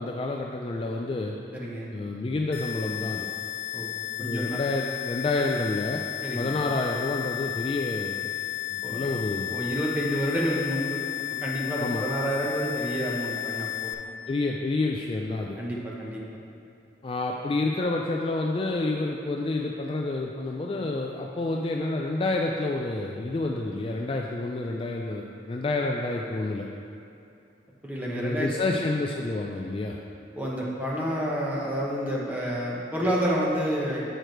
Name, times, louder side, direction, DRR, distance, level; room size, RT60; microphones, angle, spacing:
voice 1, 0.0-1.4 1.9-3.3 4.2-6.0 6.4-8.2 8.7-9.6 11.8-12.0 14.3-15.6 17.0-26.7 28.2-30.0, left 2 dB, 30° left, 0 dB, 0.3 m, -29 dB
voice 2, 1.5-1.9 3.7-3.9 4.2-4.6 6.2-6.5 8.8-9.1 9.5-11.0 11.4-13.9 15.6-16.2 27.8-28.5 30.3-34.0, equal, 10° right, -5 dB, 0.9 m, -29 dB
sound 1, 2.5-13.9, left 14 dB, 60° left, 0.6 m, -33 dB
7.8 x 4.9 x 4.4 m, 2.7 s
head